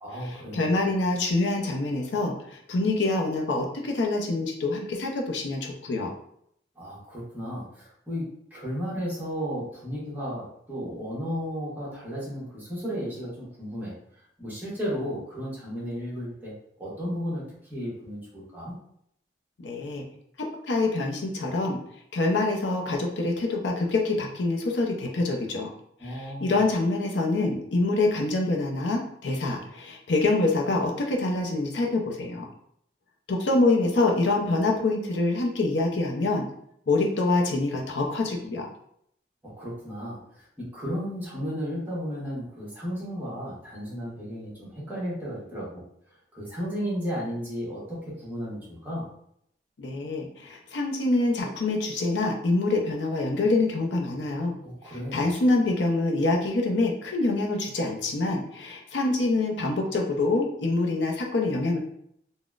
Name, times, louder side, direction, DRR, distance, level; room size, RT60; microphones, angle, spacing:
voice 1, 0.0-0.7 6.8-13.9 14.4-17.4 17.7-18.8 26.0-26.6 39.4-45.8 46.3-49.1 54.6-55.2, equal, 10° right, -7 dB, 1.1 m, -34 dB
voice 2, 0.5-6.1 19.6-20.0 20.7-21.8 22.1-25.7 26.0-32.4 33.3-36.4 36.9-38.7 49.8-54.5 54.9-61.8, left 2 dB, 80° left, 1 dB, 0.5 m, -25 dB
3.8 x 2.1 x 2.3 m, 0.70 s
head